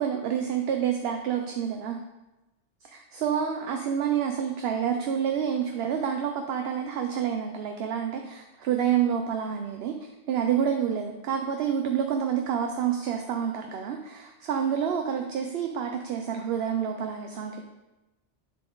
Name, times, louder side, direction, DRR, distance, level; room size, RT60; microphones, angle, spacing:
voice 1, 0.0-2.0 2.9-17.6, right 8 dB, 65° right, 4 dB, 0.8 m, -28 dB
10.5 x 4.0 x 3.8 m, 1.0 s
omnidirectional pair, 1.2 m